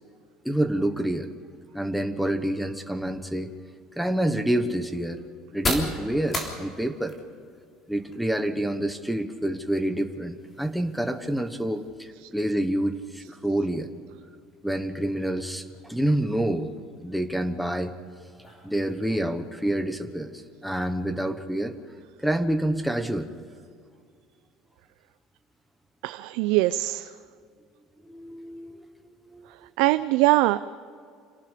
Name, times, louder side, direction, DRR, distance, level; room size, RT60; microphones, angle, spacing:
voice 1, 0.4-1.3 1.7-3.5 4.0-5.2 5.5-7.2 7.9-13.9 14.6-16.7 17.0-17.9 18.6-21.7 22.2-23.3 28.0-28.8 29.2-29.7, right 1 dB, ahead, 6 dB, 1.2 m, -27 dB
sound 1, 3.5-21.1, left 1 dB, 20° left, 3.4 m, -41 dB
voice 2, 26.0-27.1 29.8-30.6, right 18 dB, 75° right, 11 dB, 0.5 m, -22 dB
27.5 x 18.5 x 5.1 m, 2.2 s
cardioid pair, 160°, 0 cm